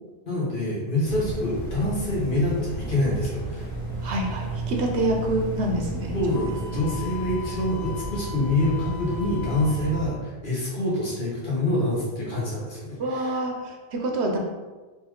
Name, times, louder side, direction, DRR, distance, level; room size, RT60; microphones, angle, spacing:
voice 1, 0.3-3.7 6.1-13.4, left 1 dB, 45° left, -6 dB, 1.5 m, -26 dB
sound 1, 1.0-10.1, right 2 dB, 85° left, 1.8 m, -33 dB
voice 2, 4.0-6.1 13.0-14.4, right 1 dB, 70° right, 1 dB, 1.0 m, -26 dB
Wind instrument woodwind instrument, 6.3-10.0, left 5 dB, 30° left, 1.2 m, -40 dB
4.4 x 3.2 x 3.6 m, 1.3 s
omnidirectional pair, 1.2 m